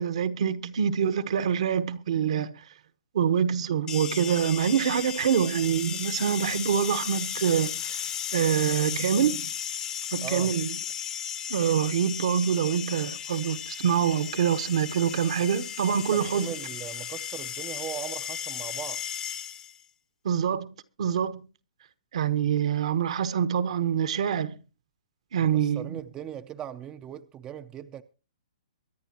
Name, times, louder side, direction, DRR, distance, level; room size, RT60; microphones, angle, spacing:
voice 1, 0.0-2.5 3.1-8.0 8.3-9.5 10.1-10.8 11.5-16.5 20.2-20.7 21.0-21.4 22.1-24.5 25.3-26.0, right 8 dB, 60° right, 1.1 m, -25 dB
sound 1, 3.9-19.8, left 9 dB, 20° left, 0.8 m, -35 dB
voice 2, 10.2-10.5 15.9-19.0 25.5-28.0, right 10 dB, 20° right, 0.5 m, -39 dB
23.5 x 10.5 x 2.9 m
hypercardioid pair, 145°, 4 cm